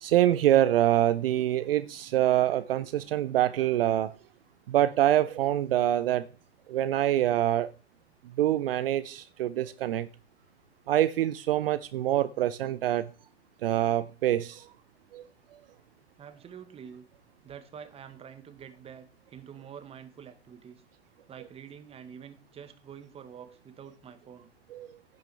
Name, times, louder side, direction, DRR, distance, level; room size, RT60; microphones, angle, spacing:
voice 1, 0.0-4.1 4.7-6.2 6.7-7.7 8.4-10.1 10.9-13.1 13.6-14.7 15.1-15.2 24.7-24.9, right 12 dB, 60° right, 0.6 m, -25 dB
voice 2, 16.2-17.0 17.4-20.8 21.3-24.5, right 8 dB, 15° right, 1.2 m, -47 dB
16.0 x 6.1 x 3.3 m
figure-of-eight pair, 110°, 34 cm